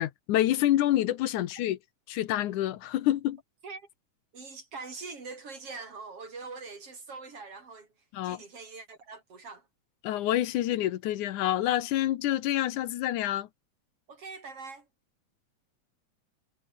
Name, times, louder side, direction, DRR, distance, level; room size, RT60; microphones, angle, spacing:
voice 1, 0.0-1.8 2.1-3.4 8.1-8.4 10.0-13.5, left 13 dB, 80° left, 2.5 m, -27 dB
voice 2, 4.3-7.9 8.2-9.7 14.1-14.9, right 4 dB, 50° right, 5.9 m, -43 dB
omnidirectional pair, 3.4 m